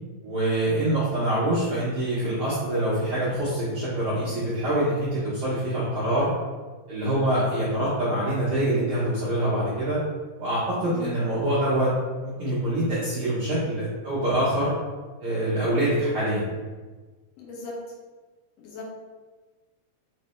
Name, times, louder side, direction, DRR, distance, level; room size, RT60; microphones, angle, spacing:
voice 1, 0.2-6.3 6.9-10.0 10.4-11.9 12.2-14.7 15.2-16.5, right 1 dB, 70° right, -11 dB, 1.3 m, -25 dB
voice 2, 17.4-17.7 18.6-19.0, left 3 dB, 70° left, -3 dB, 1.6 m, -38 dB
5.2 x 3.3 x 3.1 m, 1.3 s
omnidirectional pair, 4.1 m